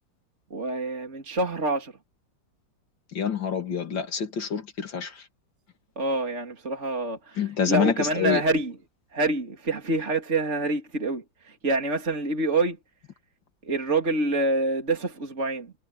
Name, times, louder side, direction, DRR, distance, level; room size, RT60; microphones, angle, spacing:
voice 1, 0.5-1.9 6.0-8.7 9.1-12.8 13.6-15.7, right 2 dB, 40° right, 3.2 m, -26 dB
voice 2, 3.1-5.2 7.4-8.4, left 7 dB, 80° left, 3.0 m, -27 dB
omnidirectional pair, 2.0 m